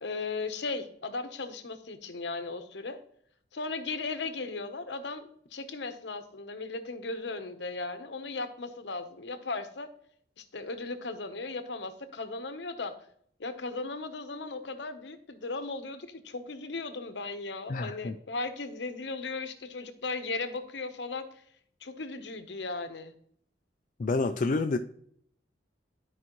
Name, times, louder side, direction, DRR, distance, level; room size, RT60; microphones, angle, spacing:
voice 1, 0.0-3.0 3.5-9.9 10.4-12.9 13.4-21.3 21.8-23.1, left 3 dB, 70° left, 0.9 m, -37 dB
voice 2, 17.7-18.2 24.0-24.8, left 3 dB, 45° left, 0.4 m, -28 dB
12.0 x 4.8 x 3.0 m
head